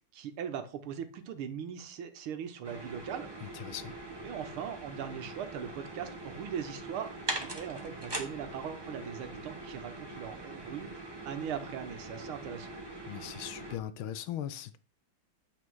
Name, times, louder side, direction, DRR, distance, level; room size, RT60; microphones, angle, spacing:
voice 1, 0.1-3.6 4.2-12.8, right 8 dB, 80° right, 1.8 m, -40 dB
sound 1, 2.6-13.8, right 2 dB, 20° right, 0.7 m, -42 dB
voice 2, 3.4-3.9 13.1-14.8, left 11 dB, 75° left, 1.4 m, -39 dB
8.3 x 4.8 x 4.6 m
omnidirectional pair, 2.3 m